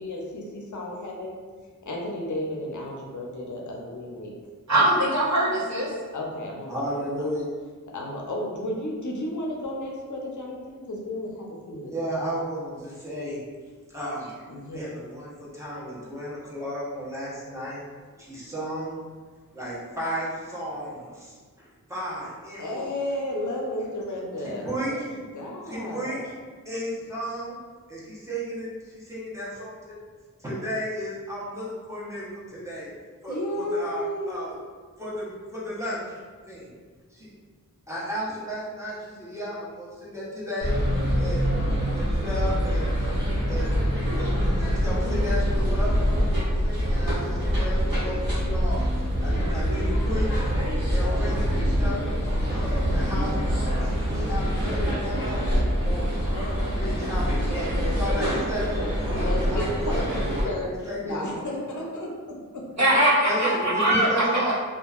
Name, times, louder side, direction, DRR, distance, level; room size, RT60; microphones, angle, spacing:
voice 1, 0.0-1.4 1.9-4.3 6.1-6.7 7.2-7.3 7.9-12.3 14.5-14.8 22.6-26.2 33.3-34.5 59.1-60.7 61.0-62.1, left 1 dB, 60° left, 0.5 m, -33 dB
voice 2, 4.7-5.9 62.8-64.2, right 1 dB, 55° right, 0.8 m, -21 dB
voice 3, 6.7-7.5 11.9-13.4 13.9-17.8 18.2-19.0 19.5-22.9 24.4-25.1 25.6-26.3 26.6-27.6 27.9-30.0 30.4-32.9 33.2-34.5 35.0-36.2 36.5-36.7 37.1-37.3 37.9-40.7 41.2-41.5 41.9-42.9 43.5-43.7 44.2-48.8 49.2-50.5 50.9-53.4 53.8-56.2 56.7-58.8 59.1-61.2 62.7-62.8 63.2-64.5, equal, 10° right, 0.9 m, -34 dB
sound 1, 40.6-60.4, equal, 90° right, 1.1 m, -25 dB
2.6 x 2.4 x 2.4 m
wide cardioid pair, 45°, 33 cm